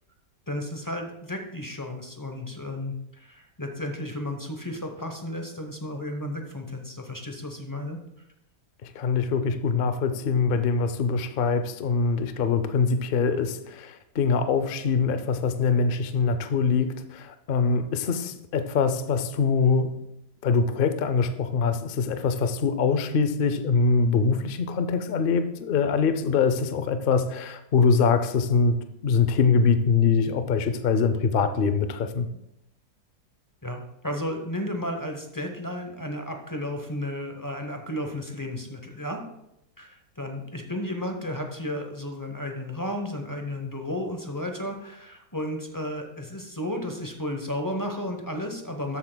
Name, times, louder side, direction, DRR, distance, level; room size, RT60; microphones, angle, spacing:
voice 1, 0.5-8.0 33.6-39.2 39.8-49.0, left 1 dB, 20° left, 4 dB, 0.5 m, -33 dB
voice 2, 9.0-20.0 20.4-28.8 29.0-32.3, left 5 dB, 70° left, 10 dB, 0.5 m, -23 dB
13.0 x 8.3 x 2.2 m, 0.84 s
omnidirectional pair, 1.8 m